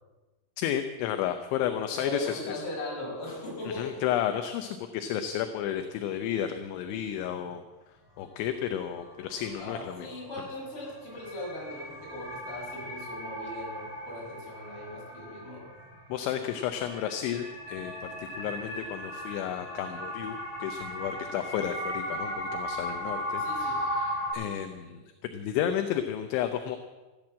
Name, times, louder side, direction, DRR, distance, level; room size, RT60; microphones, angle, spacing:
voice 1, 0.6-2.6 3.6-7.6 8.2-10.1 16.1-25.0 25.3-26.8, left 10 dB, 80° left, 7 dB, 3.0 m, -32 dB
voice 2, 1.9-4.0 9.6-15.7 23.4-23.9, left 1 dB, 30° left, -4 dB, 6.5 m, -39 dB
sound 1, 8.5-8.6 9.0-24.3, equal, 5° right, 6.8 m, -37 dB
15.0 x 12.5 x 7.5 m, 1.2 s
omnidirectional pair, 5.7 m